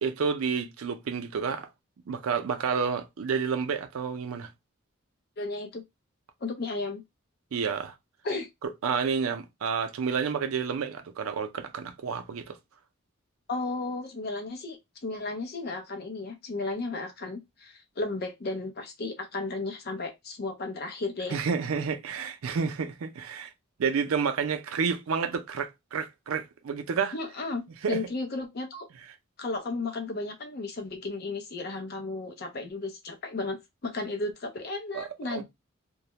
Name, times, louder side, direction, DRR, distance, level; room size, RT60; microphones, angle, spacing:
voice 1, 0.0-1.7 2.1-4.5 7.5-7.9 8.6-12.6 21.3-23.5 23.8-27.1 27.8-28.0 34.9-35.4, right 6 dB, 80° right, 0.4 m, -30 dB
voice 2, 5.4-5.8 6.4-7.0 8.2-8.5 13.5-21.4 27.1-27.6 27.9-28.9 29.4-35.4, left 3 dB, 45° left, 0.5 m, -34 dB
2.3 x 2.0 x 2.7 m
head